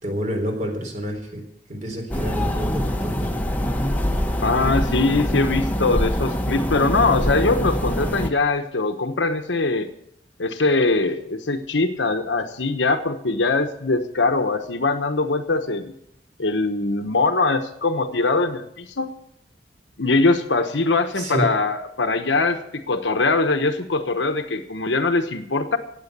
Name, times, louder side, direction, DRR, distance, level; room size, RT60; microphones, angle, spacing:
voice 1, 0.0-3.3 21.2-21.5, equal, 45° right, 3 dB, 3.9 m, -29 dB
sound 1, 2.1-8.3, equal, 10° left, 1.1 m, -24 dB
voice 2, 4.4-9.9 10.4-15.9 16.4-19.1 20.0-25.8, left 3 dB, 90° left, 7 dB, 1.1 m, -22 dB
16.0 x 8.9 x 6.8 m, 0.73 s
head